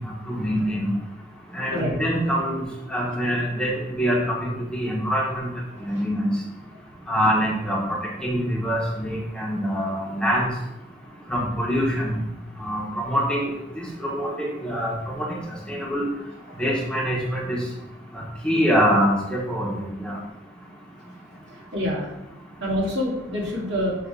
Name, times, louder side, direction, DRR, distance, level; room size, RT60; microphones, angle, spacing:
voice 1, 0.3-0.9 1.5-2.6 2.9-5.5 5.8-6.3 7.1-10.5 11.3-12.2 12.6-13.5 13.8-15.4 15.7-16.0 16.6-17.6 18.4-20.2, equal, 5° left, -4 dB, 1.2 m, -24 dB
voice 2, 5.7-6.0 16.5-16.6 21.5-22.1 22.6-24.0, left 1 dB, 80° right, -4 dB, 2.1 m, -27 dB
7.0 x 3.2 x 4.7 m, 0.90 s
head